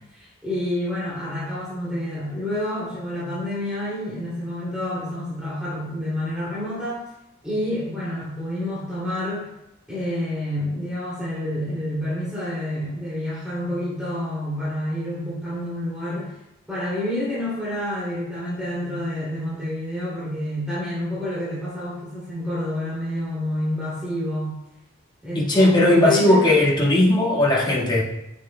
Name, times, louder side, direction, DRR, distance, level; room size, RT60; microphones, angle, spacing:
voice 1, 0.1-7.0 7.4-9.5 9.9-16.4 16.7-24.5 25.2-26.5, left 1 dB, 5° right, -10 dB, 2.6 m, -28 dB
voice 2, 25.3-28.0, left 1 dB, 20° left, -6 dB, 1.7 m, -17 dB
9.6 x 7.9 x 2.2 m, 0.90 s
head